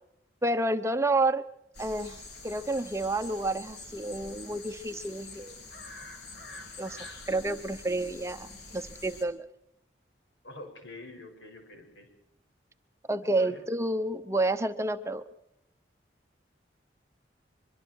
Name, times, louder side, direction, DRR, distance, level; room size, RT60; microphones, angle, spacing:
voice 1, 0.4-1.4 1.8-5.6 6.8-7.0 7.3-9.4 13.1-15.2, right 2 dB, 15° right, 9 dB, 0.8 m, -29 dB
sound 1, 1.7-9.2, left 3 dB, 65° left, 3.7 m, -46 dB
voice 2, 10.4-12.1 13.4-13.6, left 2 dB, 80° left, 4 dB, 6.2 m, -45 dB
24.5 x 23.5 x 4.7 m, 0.77 s
head